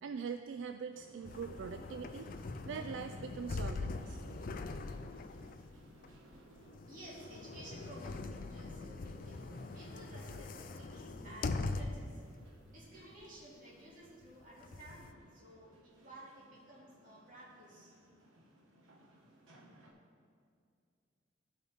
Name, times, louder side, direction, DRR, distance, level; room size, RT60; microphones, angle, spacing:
voice 1, 0.0-4.2, right 6 dB, 70° right, 8 dB, 0.3 m, -43 dB
sound 1, 0.9-19.9, right 1 dB, 85° right, 1.5 m, -60 dB
sound 2, 1.2-12.2 12.7-12.8 14.2-15.1, left 3 dB, 45° left, 0.4 m, -42 dB
voice 2, 6.9-12.2 12.7-17.9, right 1 dB, 40° right, -6 dB, 2.4 m, -54 dB
15.0 x 5.5 x 3.5 m, 2.3 s
head